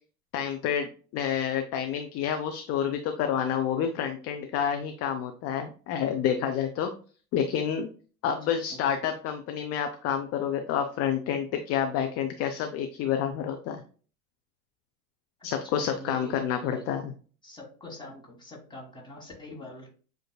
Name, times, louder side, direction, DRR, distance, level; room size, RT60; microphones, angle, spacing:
voice 1, 0.3-6.9 7.3-7.9 8.2-13.8 15.4-17.1, left 8 dB, 35° left, 6 dB, 0.5 m, -29 dB
voice 2, 8.4-8.8 15.4-16.8 17.4-19.9, left 1 dB, 10° left, -1 dB, 1.6 m, -45 dB
7.6 x 2.6 x 2.2 m, 0.39 s
figure-of-eight pair, 75°, 46 cm